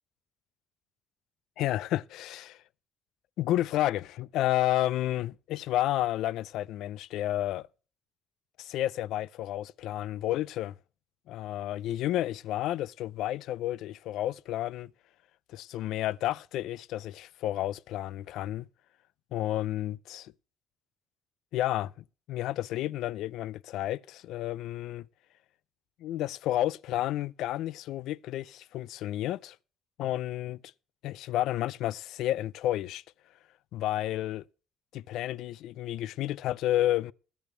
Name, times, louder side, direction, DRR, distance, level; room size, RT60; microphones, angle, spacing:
voice 1, 1.6-2.6 3.4-7.7 8.6-10.7 11.3-14.9 15.5-18.7 19.3-20.3 21.5-21.9 22.3-25.1 26.0-29.6 30.0-30.6 31.0-33.0 33.7-34.4 34.9-37.1, left 14 dB, 80° left, 0.5 m, -31 dB
20.5 x 8.4 x 3.3 m
cardioid pair, 180°, 0 cm